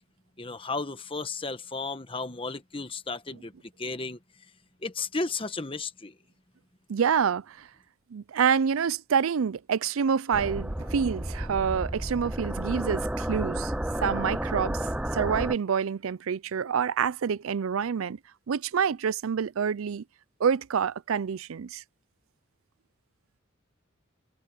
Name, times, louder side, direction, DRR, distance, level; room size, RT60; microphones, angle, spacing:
voice 1, 0.4-3.5 3.8-4.2 4.8-6.1, left 3 dB, 25° left, 1.2 m, -33 dB
voice 2, 6.9-7.7 8.1-13.7 14.0-14.8 15.1-18.2 18.5-20.0 20.4-21.8, right 7 dB, 85° right, 0.5 m, -27 dB
sound 1, 10.3-15.6, right 1 dB, 5° right, 0.4 m, -31 dB
head